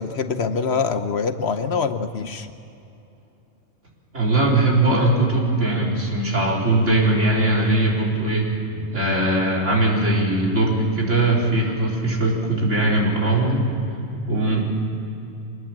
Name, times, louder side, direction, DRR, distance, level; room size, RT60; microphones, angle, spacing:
voice 1, 0.0-2.5, left 5 dB, 55° left, 9 dB, 1.1 m, -24 dB
voice 2, 4.1-8.5 8.7-13.7 14.3-14.6, right 2 dB, 65° right, -3 dB, 4.5 m, -20 dB
24.0 x 20.0 x 7.4 m, 2.9 s
omnidirectional pair, 1.3 m